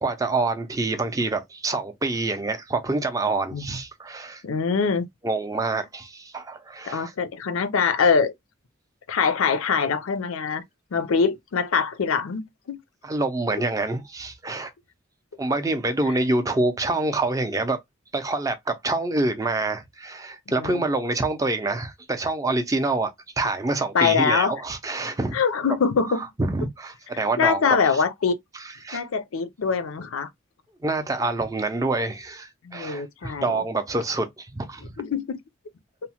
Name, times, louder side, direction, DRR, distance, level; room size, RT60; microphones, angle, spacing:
voice 1, 0.0-4.4 5.2-7.1 13.0-14.7 15.4-17.8 18.1-25.4 26.2-28.0 28.8-29.0 30.8-34.9, right 2 dB, 15° right, 0.4 m, -26 dB
voice 2, 4.4-5.1 6.9-8.3 9.1-10.6 10.9-12.8 20.5-20.8 23.9-24.5 25.3-26.3 27.4-28.4 28.9-30.3 32.6-33.6 35.0-35.4, left 5 dB, 90° left, 0.5 m, -23 dB
2.8 x 2.0 x 2.8 m
head